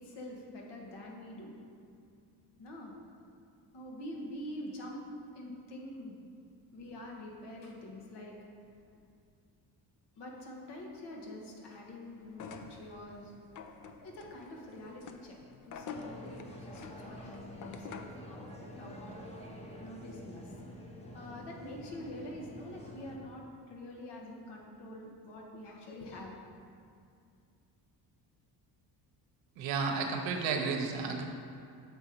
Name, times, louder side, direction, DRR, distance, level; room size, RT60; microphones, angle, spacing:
voice 1, 0.0-1.6 2.6-2.9 3.7-5.0 5.3-6.1 6.7-8.3 10.2-13.3 14.0-15.4 15.6-19.0 19.4-20.5 21.1-26.3, left 1 dB, 70° left, -1 dB, 1.3 m, -46 dB
sound 1, 12.3-18.3, left 5 dB, 45° left, 0.5 m, -48 dB
sound 2, 15.9-23.2, equal, 15° left, 0.8 m, -48 dB
voice 2, 29.6-31.2, right 5 dB, 85° right, 3 dB, 0.8 m, -32 dB
6.8 x 3.9 x 4.3 m, 2.4 s
cardioid pair, 95°, 43 cm